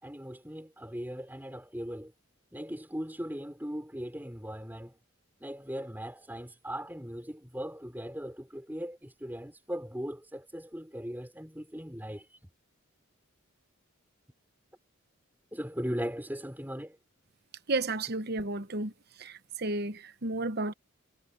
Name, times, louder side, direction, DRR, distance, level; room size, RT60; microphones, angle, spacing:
voice 1, 0.0-2.1 2.5-5.0 5.4-12.3 15.5-17.0, equal, 10° right, 5.1 m, -38 dB
voice 2, 17.7-18.9 19.2-20.7, right 2 dB, 50° right, 1.0 m, -32 dB
head